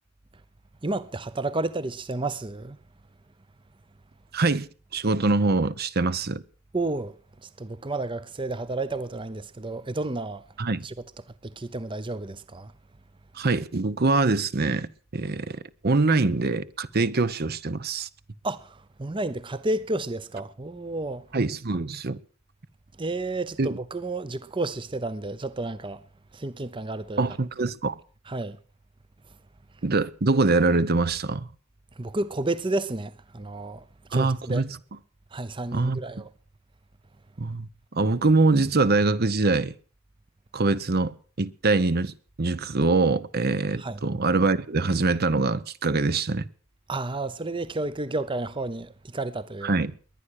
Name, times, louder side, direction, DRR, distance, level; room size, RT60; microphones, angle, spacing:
voice 1, 0.8-2.8 6.7-7.1 7.4-10.4 10.8-10.9 11.4-12.7 18.4-21.2 23.0-26.0 26.3-27.2 28.3-28.6 32.0-33.8 34.1-34.6 35.3-36.3 43.8-44.0 46.9-49.7, right 2 dB, 25° right, 0.7 m, -31 dB
voice 2, 4.3-6.4 10.6-10.8 13.3-15.6 15.8-18.1 21.3-22.2 23.6-23.8 27.2-28.0 29.8-31.5 34.1-34.8 35.7-36.0 37.4-37.7 37.9-39.7 40.5-46.4 49.6-49.9, right 3 dB, 50° right, 0.8 m, -24 dB
21.5 x 10.0 x 6.5 m
head